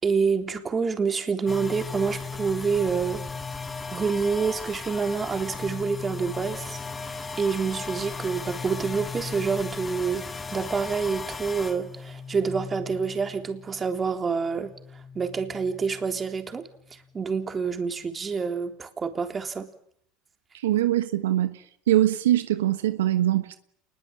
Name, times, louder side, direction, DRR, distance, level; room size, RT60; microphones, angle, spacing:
voice 1, 0.0-3.2 3.9-6.8 7.0-14.7 15.2-19.7, right 5 dB, 25° right, 3.7 m, -27 dB
sound 1, 1.5-14.2 14.5-16.9, left 4 dB, 20° left, 2.0 m, -37 dB
voice 2, 20.6-21.6 21.9-23.6, right 13 dB, 90° right, 1.3 m, -22 dB
28.0 x 21.0 x 8.9 m
supercardioid pair, 95°, 0 cm